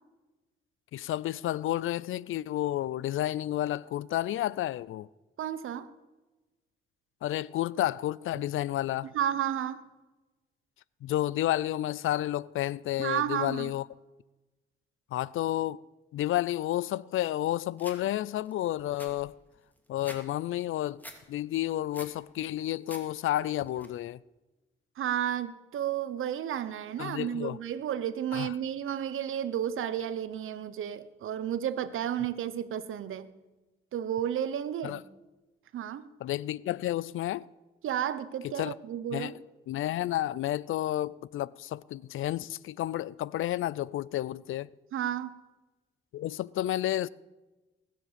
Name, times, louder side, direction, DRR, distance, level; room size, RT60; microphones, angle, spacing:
voice 1, 0.9-5.1 7.2-9.1 11.0-13.9 15.1-15.8 16.1-19.4 19.9-21.0 21.3-24.2 27.0-27.6 28.3-28.5 34.8-35.0 36.2-37.5 38.4-38.7 39.1-39.3 39.7-44.7 46.1-47.1, left 13 dB, 80° left, 0.4 m, -31 dB
voice 2, 5.4-5.9 9.1-9.8 13.0-13.7 25.0-33.3 33.9-35.0 35.7-36.1 37.8-39.4 44.9-45.3, right 10 dB, 80° right, 0.9 m, -32 dB
sound 1, 17.8-18.0 18.5-18.6 18.8-20.2 20.5-21.2 21.6-22.2 22.6-23.0 23.4-23.9, equal, 10° left, 2.7 m, -47 dB
20.0 x 7.7 x 6.9 m
cardioid pair, 75°, 21 cm